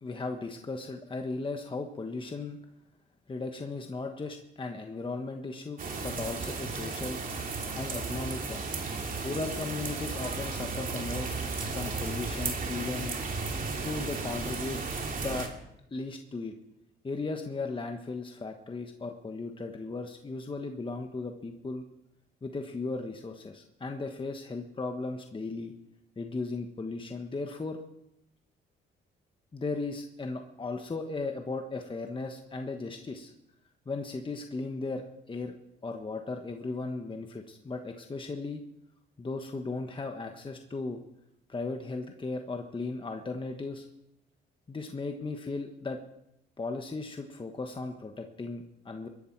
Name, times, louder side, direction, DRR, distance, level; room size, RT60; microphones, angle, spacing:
voice 1, 0.0-2.6 3.3-7.2 7.7-8.6 9.2-11.3 11.7-13.2 13.8-14.8 15.2-15.6 15.9-16.5 17.0-21.8 22.4-25.7 26.2-27.8 29.5-33.3 33.9-35.6 35.8-38.6 39.2-41.0 41.5-43.9 44.7-46.0 46.6-49.1, left 3 dB, 25° left, 4 dB, 1.3 m, -36 dB
sound 1, 5.8-15.5, right 4 dB, 45° right, 2.8 m, -34 dB
21.5 x 11.5 x 4.7 m, 0.83 s
cardioid pair, 90°, 20 cm